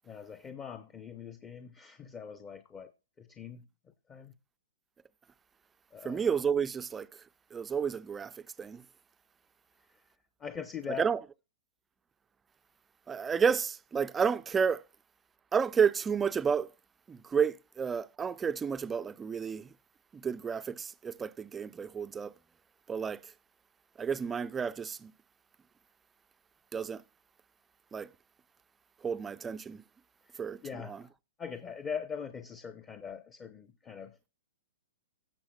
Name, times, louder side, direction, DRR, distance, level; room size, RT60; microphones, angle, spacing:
voice 1, 0.0-2.9 3.2-3.7 4.1-4.3 5.9-6.2 10.4-11.1 30.6-31.1 31.4-34.2, left 7 dB, 20° left, 0.7 m, -41 dB
voice 2, 6.0-7.1 7.5-8.8 11.0-11.2 13.1-14.8 15.5-16.7 17.1-19.7 20.1-22.3 22.9-23.2 24.0-25.1 26.7-27.0 27.9-28.1 29.0-29.8 30.4-31.0, right 6 dB, 15° right, 0.4 m, -31 dB
17.5 x 6.9 x 2.3 m
hypercardioid pair, 125°, 0 cm